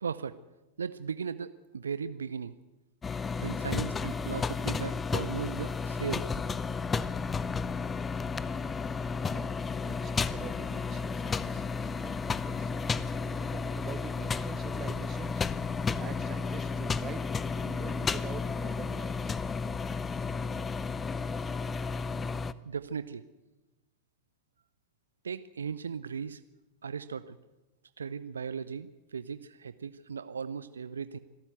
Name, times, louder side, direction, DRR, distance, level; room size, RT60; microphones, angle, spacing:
voice 1, 0.0-0.4 0.8-2.5 3.4-6.5 22.6-23.2 25.2-26.4 26.8-27.4 28.0-31.2, right 6 dB, 70° right, 14 dB, 0.6 m, -37 dB
sound 1, 3.0-22.5, left 5 dB, 15° left, 0.6 m, -32 dB
voice 2, 9.8-12.7 13.2-15.4 16.0-17.3 17.6-19.3, right 9 dB, 30° right, 13 dB, 1.2 m, -46 dB
25.5 x 13.0 x 8.0 m, 1.1 s
figure-of-eight pair, 90°, 0 cm